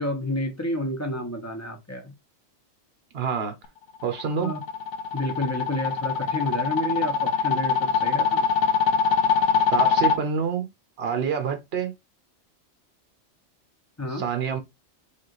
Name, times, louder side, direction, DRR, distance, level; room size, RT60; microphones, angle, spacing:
voice 1, 0.0-2.1 4.4-4.6 5.1-8.5 14.0-14.3, left 1 dB, 15° left, 0.9 m, -30 dB
voice 2, 3.1-3.5 4.0-4.5 9.7-10.7 11.0-11.9 14.1-14.6, right 6 dB, 60° right, 1.1 m, -27 dB
sound 1, 4.0-10.2, left 6 dB, 75° left, 0.9 m, -23 dB
4.8 x 2.6 x 3.0 m
omnidirectional pair, 1.2 m